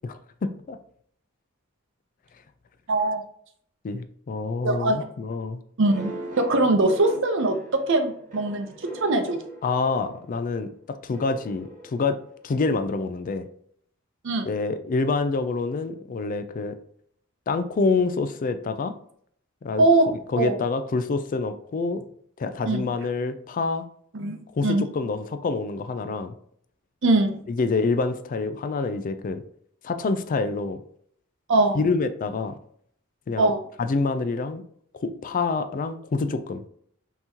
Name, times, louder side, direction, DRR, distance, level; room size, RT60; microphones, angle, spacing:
voice 1, 0.0-0.8 3.8-5.6 9.6-12.2 12.4-13.5 14.5-16.8 17.5-18.9 19.6-19.9 20.3-22.0 22.4-23.8 24.5-26.3 27.5-29.4 29.8-30.8 31.7-32.6 33.3-33.5 33.8-34.6 34.9-36.6, left 3 dB, 40° left, 10 dB, 0.3 m, -27 dB
voice 2, 2.9-3.2 4.6-5.0 5.8-9.4 14.2-14.5 19.8-20.1 20.4-20.6 22.6-22.9 24.1-24.4 24.6-24.9 27.0-27.4 31.5-31.8 33.4-33.6, right 2 dB, 60° right, 6 dB, 0.7 m, -22 dB
sound 1, 5.8-10.4 11.1-12.7, right 1 dB, 40° right, 1.2 m, -40 dB
5.5 x 3.0 x 2.8 m, 0.64 s
head